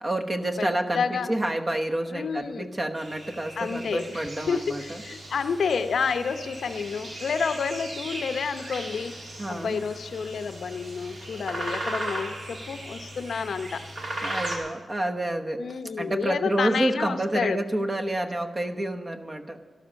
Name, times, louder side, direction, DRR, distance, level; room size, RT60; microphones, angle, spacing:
voice 1, 0.0-5.0 9.4-9.8 14.2-15.6 16.0-19.6, right 1 dB, 25° right, 5 dB, 1.0 m, -29 dB
voice 2, 0.9-1.3 2.1-2.7 3.6-9.1 9.5-13.8 15.6-17.6, left 5 dB, 65° left, 10 dB, 0.7 m, -29 dB
sound 1, 3.0-14.6, right 1 dB, 50° right, 2.4 m, -37 dB
12.5 x 12.5 x 6.3 m, 1.5 s
wide cardioid pair, 120°, 0 cm